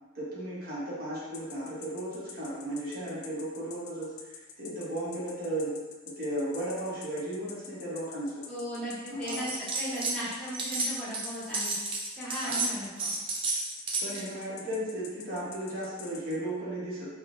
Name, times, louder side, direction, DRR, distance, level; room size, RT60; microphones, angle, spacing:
voice 1, 0.1-5.8 6.1-8.5 9.1-9.5 12.4-12.7 14.0-17.1, right 1 dB, 45° right, -8 dB, 1.0 m, -35 dB
sound 1, 1.3-16.4, left 6 dB, 70° left, 0.3 m, -46 dB
voice 2, 8.5-11.8 12.1-13.1, equal, 5° left, -11 dB, 0.7 m, -37 dB
sound 2, 9.3-10.2 10.4-14.3, right 3 dB, 25° right, 0.3 m, -32 dB
3.5 x 2.1 x 2.4 m, 1.2 s
head